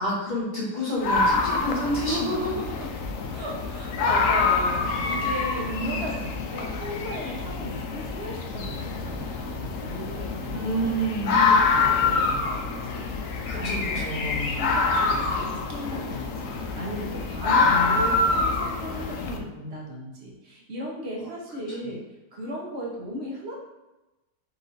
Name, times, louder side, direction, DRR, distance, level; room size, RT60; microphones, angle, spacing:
voice 1, 0.0-2.2 5.6-6.0 10.5-11.4 13.5-14.6 17.6-18.0, equal, 30° left, -6 dB, 1.2 m, -29 dB
sound 1, 1.0-19.4, left 4 dB, 70° left, 0.8 m, -26 dB
voice 2, 2.0-3.0 3.3-10.9 11.3-13.1 13.4-22.0 22.3-23.5, equal, 45° right, -2 dB, 1.0 m, -36 dB
5.0 x 2.6 x 3.9 m, 1.0 s
omnidirectional pair, 1.8 m